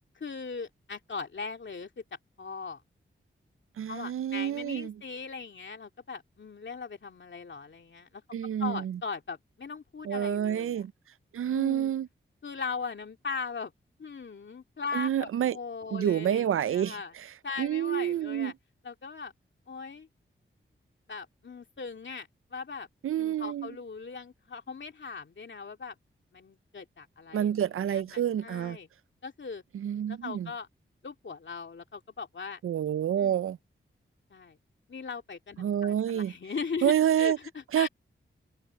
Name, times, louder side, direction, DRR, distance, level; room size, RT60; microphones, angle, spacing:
voice 1, 0.1-2.0 2.4-2.8 3.9-8.2 8.6-10.8 11.5-11.9 12.4-13.7 14.0-17.1 17.4-18.5 18.8-19.3 19.7-20.1 21.1-22.9 23.2-25.9 26.3-28.9 29.2-29.6 30.1-30.7 31.0-32.6 33.2-33.4 34.3-34.6 34.9-37.9, left 5 dB, 60° left, 2.7 m, -39 dB
voice 2, 3.8-5.0 8.3-9.0 10.0-10.9 11.3-12.1 14.9-15.6 15.9-17.3 17.6-18.5 23.0-23.7 27.3-28.8 29.7-30.5 32.6-33.6 35.6-36.3 36.8-37.4 37.7-37.9, right 10 dB, 80° right, 0.5 m, -28 dB
cardioid pair, 65°, 21 cm